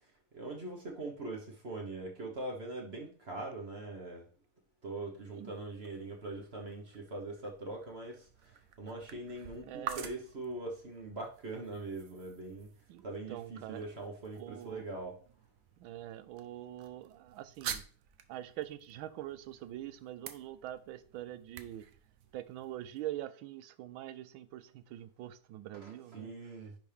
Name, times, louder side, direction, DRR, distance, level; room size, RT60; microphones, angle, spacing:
voice 1, 0.3-4.3 4.8-12.7 13.0-15.2 25.7-26.8, right 2 dB, 40° right, 1.2 m, -42 dB
sound 1, 5.2-23.0, right 8 dB, 70° right, 0.8 m, -49 dB
voice 2, 9.6-10.1 12.9-13.9 14.3-14.8 15.8-17.8 18.3-21.9 22.3-26.3, right 13 dB, 90° right, 1.4 m, -44 dB
10.5 x 3.6 x 3.4 m
omnidirectional pair, 2.2 m